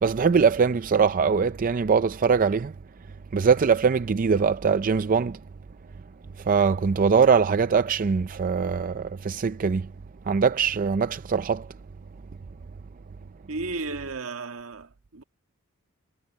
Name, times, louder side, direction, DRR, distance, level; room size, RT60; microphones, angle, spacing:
voice 1, 0.0-2.7 3.3-5.4 6.4-9.9 10.3-11.7, right 5 dB, 40° right, 0.4 m, -22 dB
voice 2, 13.5-15.2, right 3 dB, 80° right, 1.8 m, -34 dB
head